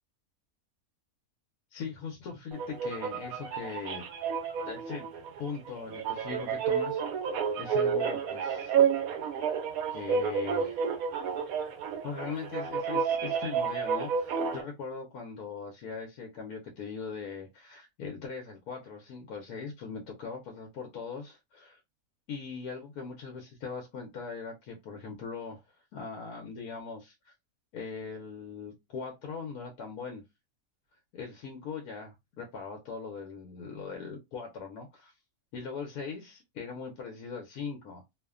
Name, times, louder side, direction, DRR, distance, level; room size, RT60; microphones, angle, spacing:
voice 1, 1.7-4.0 4.7-5.1 5.4-7.0 7.6-8.7 9.9-10.8 12.0-21.8 22.3-25.6 25.9-27.3 27.7-30.2 31.1-35.1 35.5-38.1, left 5 dB, 80° left, 1.1 m, -40 dB
sound 1, 2.5-14.6, right 6 dB, 80° right, 1.1 m, -30 dB
2.8 x 2.1 x 2.3 m
omnidirectional pair, 1.5 m